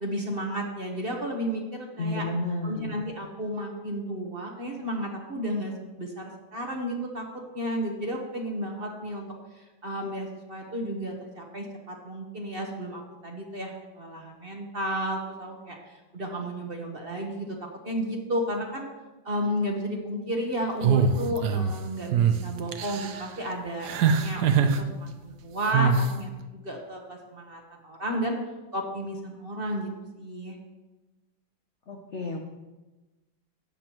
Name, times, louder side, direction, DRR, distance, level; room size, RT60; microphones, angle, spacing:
voice 1, 0.0-2.3 2.6-7.3 7.5-9.3 9.5-17.5 17.8-18.9 19.2-28.4 28.7-29.9 30.2-30.6, equal, 35° right, 1 dB, 1.2 m, -33 dB
voice 2, 2.0-3.0 31.9-32.4, left 2 dB, 55° left, 1 dB, 0.8 m, -31 dB
sound 1, 20.8-21.7 22.1-22.4 22.7-23.2 23.9-24.8 25.7-26.1, right 6 dB, 65° right, 1.1 m, -22 dB
14.0 x 9.4 x 3.0 m, 1.1 s
omnidirectional pair, 2.1 m